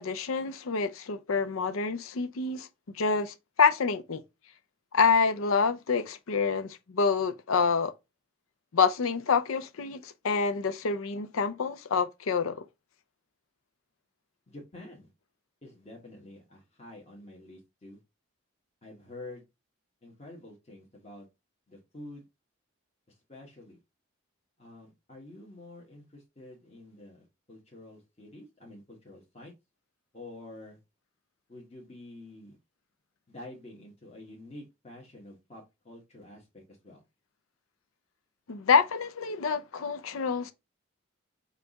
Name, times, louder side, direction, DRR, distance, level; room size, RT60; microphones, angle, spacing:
voice 1, 0.0-2.7 3.0-4.2 4.9-7.9 8.7-12.6 38.5-40.5, left 5 dB, 90° left, 0.5 m, -27 dB
voice 2, 14.5-15.1 15.6-18.0 18.8-19.4 20.0-21.3 21.7-22.2 23.3-23.8 24.6-29.5 30.1-30.8 31.5-32.6 33.3-37.0, left 2 dB, 30° left, 1.1 m, -48 dB
5.6 x 2.4 x 3.9 m
head